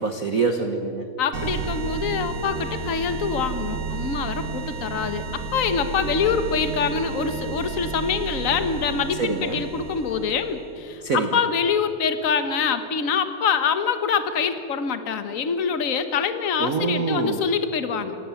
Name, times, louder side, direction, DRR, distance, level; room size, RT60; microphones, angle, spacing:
voice 1, 0.0-1.1 9.2-9.6 11.0-11.4 16.6-17.4, right 4 dB, 60° right, 6 dB, 0.8 m, -25 dB
voice 2, 1.2-18.2, left 6 dB, 55° left, 9 dB, 0.9 m, -25 dB
sound 1, 1.3-10.7, right 5 dB, 80° right, 4.0 m, -32 dB
27.5 x 18.5 x 7.2 m, 2.6 s
omnidirectional pair, 3.3 m